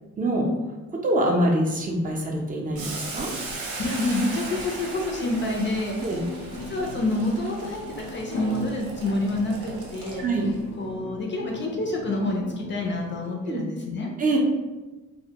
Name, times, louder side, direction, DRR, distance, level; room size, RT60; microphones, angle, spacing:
voice 1, 0.2-0.5 1.0-3.3 6.0-6.2 10.2-10.6 13.4-13.6 14.2-14.4, right 1 dB, 30° right, 0 dB, 0.5 m, -24 dB
sound 1, 1.5-13.2, left 2 dB, 85° left, 0.6 m, -41 dB
Boiling, 2.8-10.5, right 2 dB, 85° right, 0.6 m, -37 dB
voice 2, 3.8-6.1 6.5-10.2 10.8-14.1, left 2 dB, 40° left, 0 dB, 0.4 m, -28 dB
2.1 x 2.1 x 2.7 m, 1.2 s
cardioid pair, 90°, 30 cm